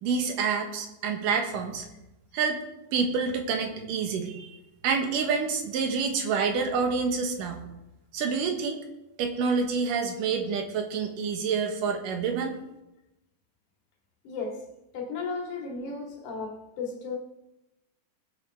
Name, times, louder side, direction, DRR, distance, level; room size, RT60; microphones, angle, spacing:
voice 1, 0.0-1.8 2.3-2.6 2.9-4.6 4.8-7.6 8.1-8.8 9.2-12.5, right 5 dB, 85° right, 3.0 m, -27 dB
voice 2, 14.3-14.7 14.9-17.2, left 4 dB, 70° left, 3.4 m, -34 dB
21.0 x 8.0 x 3.5 m
omnidirectional pair, 3.7 m